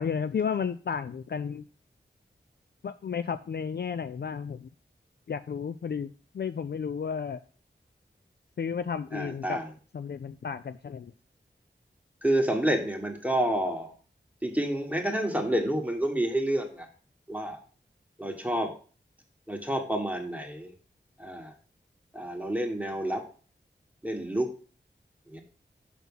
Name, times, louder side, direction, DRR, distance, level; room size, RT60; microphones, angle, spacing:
voice 1, 0.0-1.6 2.8-4.7 5.3-7.4 8.6-9.6 9.9-11.1, left 6 dB, 60° left, 11 dB, 0.4 m, -32 dB
voice 2, 9.1-9.8 12.2-13.9 14.4-16.9 17.3-17.6 18.2-18.7 19.5-20.7 21.2-21.5 22.1-23.2 24.0-24.5 25.3-25.4, right 1 dB, 10° right, 2 dB, 1.5 m, -29 dB
6.1 x 5.7 x 5.5 m, 0.40 s
wide cardioid pair, 65°, 19 cm